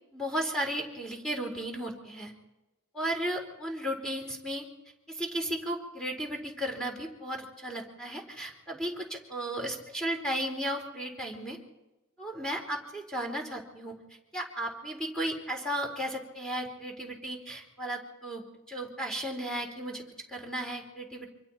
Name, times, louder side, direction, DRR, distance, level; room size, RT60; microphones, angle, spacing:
voice 1, 0.1-2.3 2.9-4.7 5.1-11.6 12.2-13.9 14.3-20.0 20.3-21.3, right 1 dB, 5° left, 1 dB, 4.4 m, -35 dB
29.0 x 25.5 x 4.5 m, 1.0 s
head